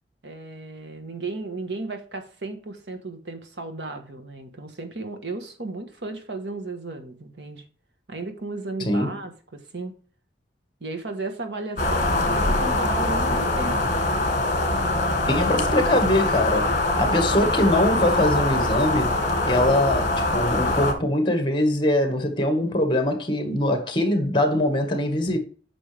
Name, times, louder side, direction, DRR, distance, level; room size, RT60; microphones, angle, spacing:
voice 1, 0.2-7.6 8.1-9.9 10.8-13.9 15.0-16.0, right 2 dB, 75° right, 1.4 m, -34 dB
sound 1, 11.8-20.9, left 2 dB, 45° left, 1.8 m, -23 dB
voice 2, 15.3-19.2 19.4-25.4, left 1 dB, 25° left, 1.6 m, -22 dB
8.8 x 6.0 x 3.5 m
head